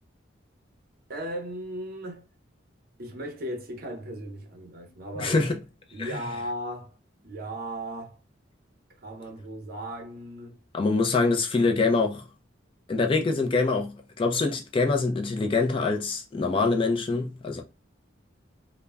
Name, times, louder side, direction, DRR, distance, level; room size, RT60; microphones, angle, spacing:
voice 1, 1.1-2.2 3.0-5.5 5.9-7.0 7.2-8.2 9.0-10.7, equal, 50° right, 0.6 m, -36 dB
voice 2, 5.2-5.6 6.0-6.3 10.7-12.3 12.9-17.6, left 3 dB, 25° left, 0.3 m, -25 dB
2.2 x 2.1 x 3.3 m
head